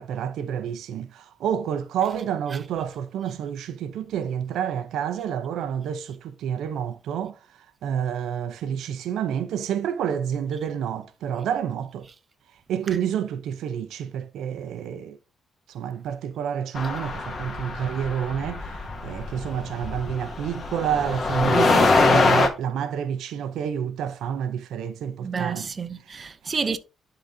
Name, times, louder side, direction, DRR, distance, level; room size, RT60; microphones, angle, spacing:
voice 1, 0.0-7.4 7.8-12.1 12.7-15.2 15.7-25.7 26.1-26.3, right 8 dB, 80° right, 0.6 m, -29 dB
sound 1, 16.8-22.5, left 3 dB, 40° left, 1.3 m, -23 dB
voice 2, 25.2-26.8, right 5 dB, 35° right, 0.7 m, -29 dB
11.0 x 3.9 x 2.7 m
cardioid pair, 90°, 0 cm